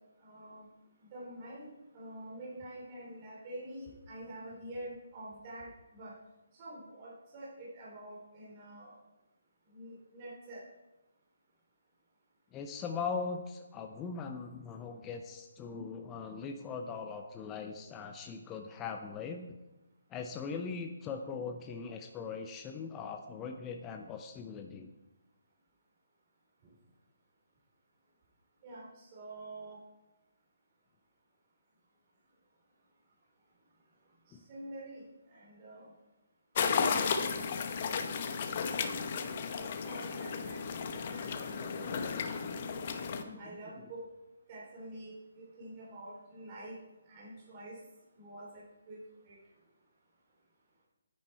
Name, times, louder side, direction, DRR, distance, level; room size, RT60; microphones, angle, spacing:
voice 1, 0.2-0.6 1.1-5.7 5.9-6.1 6.6-8.9 9.7-10.6 28.6-29.8 34.5-35.0 35.3-35.9 39.6-40.6 41.0-42.0 43.4-44.1 44.5-46.8 47.1-47.7 48.2-48.5 48.9-49.0 49.3-49.4, right 1 dB, 30° right, -6 dB, 3.6 m, -47 dB
voice 2, 12.5-19.5 20.1-24.9 34.3-34.4 43.2-43.9, left 5 dB, 15° left, 4 dB, 0.6 m, -40 dB
sound 1, 36.6-43.2, left 6 dB, 40° left, 1.0 m, -34 dB
9.9 x 9.7 x 4.4 m, 1.0 s
hypercardioid pair, 160°, 0 cm